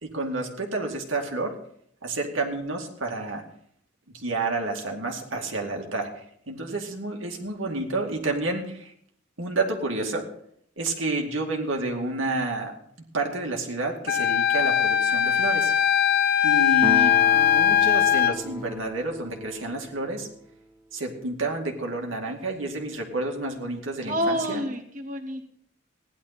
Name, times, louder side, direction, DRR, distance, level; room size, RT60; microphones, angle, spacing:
voice 1, 0.0-1.5 2.0-3.4 4.1-6.1 6.5-8.9 9.4-10.2 10.8-12.7 13.1-15.7 16.4-20.3 20.9-24.6, right 2 dB, 85° right, 2 dB, 2.3 m, -29 dB
Wind instrument woodwind instrument, 14.1-18.4, left 10 dB, 50° left, 0.6 m, -20 dB
Acoustic guitar, 16.8-20.6, right 2 dB, 15° right, 0.6 m, -35 dB
voice 2, 24.1-25.5, equal, 40° right, 3 dB, 1.4 m, -28 dB
16.5 x 11.0 x 4.2 m, 0.67 s
head